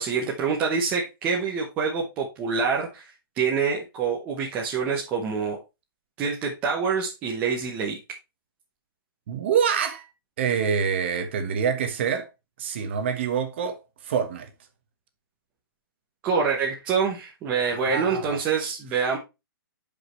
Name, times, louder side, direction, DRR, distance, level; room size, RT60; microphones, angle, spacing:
voice 1, 0.0-3.1 3.4-5.6 6.2-8.0 16.2-19.2, right 5 dB, 10° right, 0.9 m, -26 dB
voice 2, 9.3-10.1 10.4-12.3 12.6-14.5 17.6-18.4, right 7 dB, 30° right, 1.3 m, -26 dB
10.5 x 5.3 x 3.2 m
hypercardioid pair, 180°, 12 cm